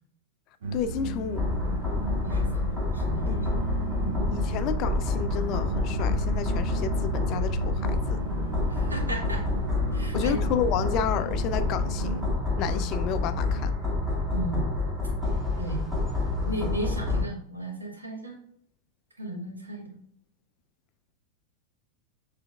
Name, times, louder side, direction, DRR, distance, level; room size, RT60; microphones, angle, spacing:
sound 1, 0.6-12.3, right 2 dB, 60° right, 0.9 m, -34 dB
voice 1, 0.7-1.5 3.3-3.5 4.3-8.2 10.1-12.3 12.6-13.7, left 8 dB, 40° left, 0.3 m, -31 dB
sound 2, 1.3-17.2, left 3 dB, 15° right, 1.5 m, -28 dB
voice 2, 2.2-3.5 4.0-4.2 8.7-9.4 9.9-10.4 14.3-14.7 15.6-15.8 16.4-18.4 19.2-20.0, right 1 dB, 80° right, 1.2 m, -35 dB
6.8 x 3.3 x 2.3 m
figure-of-eight pair, 90°, 0 cm